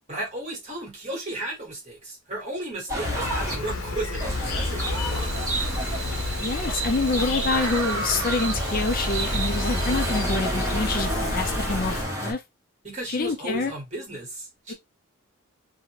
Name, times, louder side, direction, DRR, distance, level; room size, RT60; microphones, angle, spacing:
voice 1, 0.1-5.5 12.8-14.7, right 1 dB, 30° right, 1.3 m, -34 dB
sound 1, 2.9-3.5 4.2-12.3, equal, 15° right, 1.1 m, -30 dB
Insect, 3.0-12.0, left 1 dB, 85° left, 0.9 m, -30 dB
Insect 2, 4.9-10.2, right 7 dB, 80° right, 0.7 m, -36 dB
voice 2, 6.4-12.4 13.1-13.7 14.7-14.8, left 3 dB, 40° left, 0.4 m, -27 dB
2.7 x 2.4 x 2.8 m
head